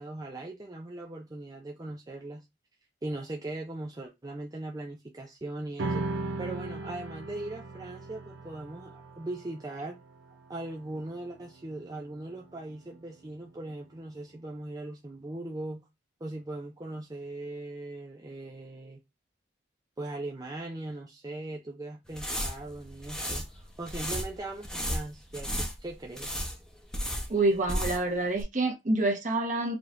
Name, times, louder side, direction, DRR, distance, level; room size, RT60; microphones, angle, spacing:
voice 1, 0.0-2.4 3.0-6.1 6.4-10.0 10.5-15.9 16.2-19.0 20.0-26.5, right 2 dB, 20° right, 0.5 m, -39 dB
sound 1, 5.8-12.5, right 3 dB, 75° right, 0.5 m, -38 dB
sound 2, 22.1-28.1 28.4-28.5, equal, 5° left, 0.9 m, -34 dB
voice 2, 27.3-29.8, right 2 dB, 45° right, 1.2 m, -27 dB
5.0 x 3.2 x 2.5 m
head